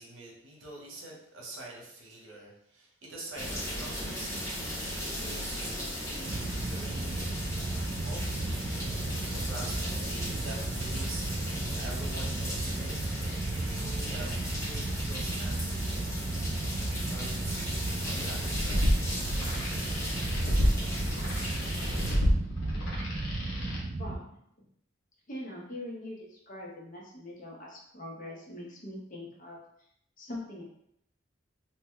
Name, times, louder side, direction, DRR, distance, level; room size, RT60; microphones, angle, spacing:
voice 1, 0.0-4.4 5.0-7.4 7.9-8.5 9.4-11.3 11.7-13.0 13.4-16.1 16.9-18.9, right 2 dB, 70° right, -2 dB, 0.9 m, -45 dB
sound 1, 3.4-22.1, equal, 15° left, 1.1 m, -37 dB
sound 2, 6.2-24.2, right 2 dB, 30° right, 0.3 m, -34 dB
sound 3, 18.4-23.8, equal, 85° left, 0.8 m, -30 dB
voice 2, 24.0-24.3 25.3-29.6 30.2-30.6, left 1 dB, 40° left, -3 dB, 0.8 m, -42 dB
2.8 x 2.1 x 3.6 m, 0.73 s
head